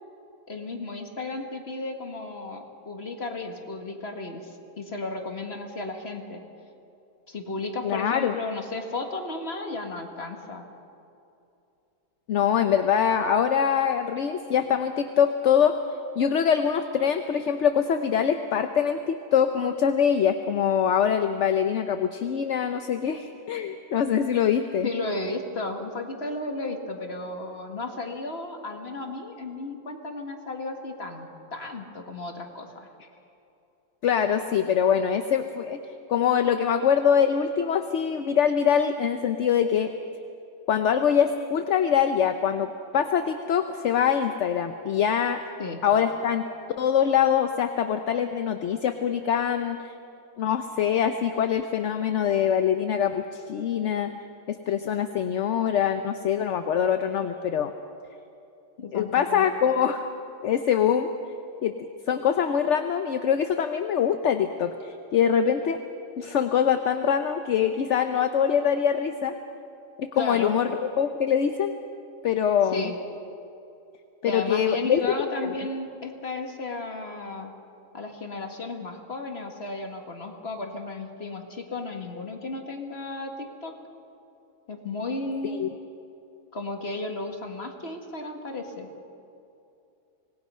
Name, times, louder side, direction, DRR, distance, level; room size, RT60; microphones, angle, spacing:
voice 1, 0.5-6.4 7.3-10.7 24.8-32.9 45.6-45.8 58.8-59.5 70.1-70.5 72.7-73.0 74.2-77.5 77.9-83.7 84.7-85.6 86.5-88.9, left 2 dB, 50° left, 3 dB, 2.0 m, -34 dB
voice 2, 7.8-8.3 12.3-15.7 16.2-24.9 34.0-35.8 36.1-39.9 40.7-45.4 45.8-46.4 46.8-49.9 50.4-54.1 54.5-57.7 58.9-60.1 60.4-61.1 61.6-61.8 62.1-65.8 66.2-69.3 70.0-70.7 71.0-71.7 72.2-72.9 74.2-75.5 85.5-85.7, left 8 dB, 65° left, 7 dB, 1.0 m, -24 dB
25.5 x 19.0 x 5.6 m, 2.7 s
omnidirectional pair, 1.4 m